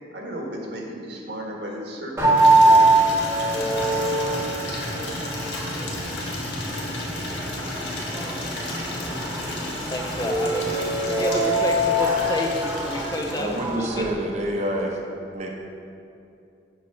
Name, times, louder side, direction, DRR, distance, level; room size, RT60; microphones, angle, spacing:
voice 1, 0.1-3.2 3.5-4.8, equal, 70° right, -1 dB, 1.4 m, -36 dB
sound 1, 2.2-14.1, right 1 dB, 15° right, 1.0 m, -23 dB
Water tap faucet / Liquid, 2.3-13.9, left 2 dB, 80° left, 1.4 m, -34 dB
voice 2, 9.9-10.7 11.1-13.5 13.8-14.1, left 1 dB, 20° left, 3 dB, 0.5 m, -29 dB
voice 3, 13.3-15.0 15.3-15.5, right 1 dB, 40° right, 0 dB, 0.8 m, -27 dB
8.5 x 4.5 x 5.5 m, 2.6 s
head